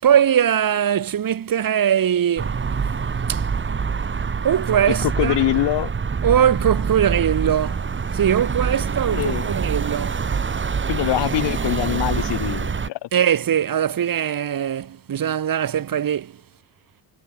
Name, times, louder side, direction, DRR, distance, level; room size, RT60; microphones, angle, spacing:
voice 1, 0.0-2.6 3.3-3.5 4.4-5.4 6.2-7.8 8.1-10.2 13.1-16.3, right 9 dB, 50° right, 7.5 m, -21 dB
sound 1, 2.4-12.9, right 5 dB, 25° right, 2.6 m, -25 dB
voice 2, 4.9-5.9 9.1-9.5 10.9-13.1, left 15 dB, 75° left, 4.4 m, -23 dB
cardioid pair, 115°, 43 cm